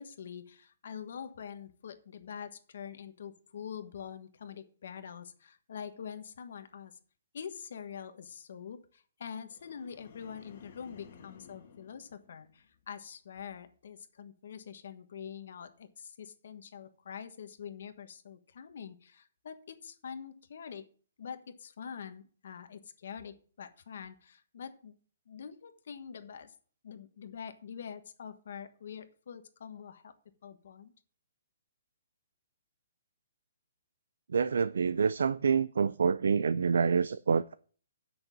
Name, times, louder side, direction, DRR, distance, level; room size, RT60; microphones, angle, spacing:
voice 1, 0.0-7.0 7.3-20.8 21.2-25.0 25.3-26.5 26.8-30.1 30.4-30.9, left 7 dB, 60° left, 1.4 m, -45 dB
sound 1, 9.5-12.9 13.3-13.7, left 6 dB, 45° left, 2.1 m, -56 dB
voice 2, 34.3-37.5, right 6 dB, 85° right, 0.4 m, -27 dB
8.0 x 6.3 x 7.4 m
hypercardioid pair, 170°, 0 cm